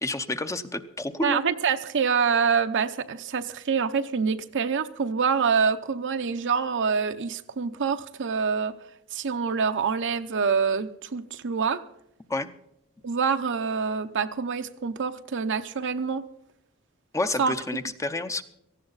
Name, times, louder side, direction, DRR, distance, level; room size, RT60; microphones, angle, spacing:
voice 1, 0.0-1.4 12.3-12.5 17.1-18.4, left 2 dB, 15° left, 9 dB, 0.7 m, -29 dB
voice 2, 1.2-8.7 9.1-11.8 13.0-16.2 17.4-17.5, right 6 dB, 55° right, 8 dB, 0.8 m, -26 dB
17.5 x 15.0 x 4.0 m, 0.78 s
head